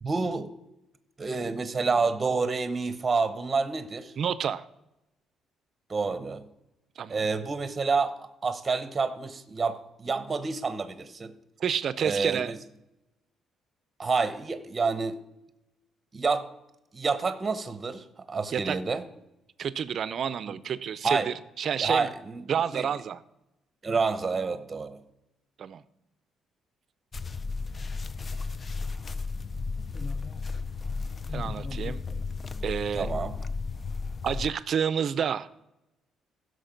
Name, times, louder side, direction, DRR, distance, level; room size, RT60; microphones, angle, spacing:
voice 1, 0.0-0.5 1.2-4.1 5.9-6.5 7.1-8.1 8.4-11.3 12.0-12.6 14.0-15.2 16.1-16.5 16.9-19.0 20.5-20.6 21.0-21.3 21.8-22.9 23.8-25.0 32.9-33.4, right 4 dB, 20° right, 11 dB, 0.9 m, -28 dB
voice 2, 4.2-4.6 7.0-7.2 11.6-12.5 18.5-18.8 19.6-22.1 22.5-23.2 25.6-25.8 31.3-32.0 32.6-33.1 34.2-35.6, right 8 dB, 45° right, 16 dB, 0.5 m, -29 dB
sound 1, 27.1-34.5, left 4 dB, 25° left, 0.5 m, -34 dB
15.5 x 6.4 x 5.2 m, 0.90 s
cardioid pair, 150°, 0 cm